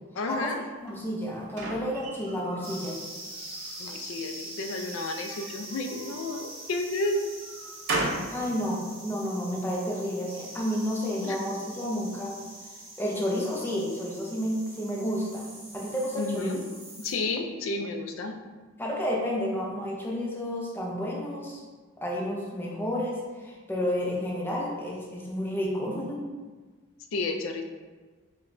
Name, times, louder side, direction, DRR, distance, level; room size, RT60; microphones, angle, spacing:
voice 1, 0.1-0.6 3.8-7.2 11.2-11.4 16.2-16.6 17.0-18.3 27.1-27.6, left 2 dB, 70° left, 5 dB, 0.4 m, -31 dB
voice 2, 0.8-3.0 8.3-12.4 13.0-15.5 15.7-16.5 18.8-21.6 22.0-26.2, equal, 10° left, -3 dB, 0.5 m, -31 dB
sound 1, 0.9-2.8 3.3-4.0 5.0-6.5 7.0-8.4, right 2 dB, 55° right, 0.5 m, -35 dB
sound 2, 2.6-17.1, right 1 dB, 30° right, 0.9 m, -44 dB
4.7 x 2.2 x 2.5 m, 1.4 s
head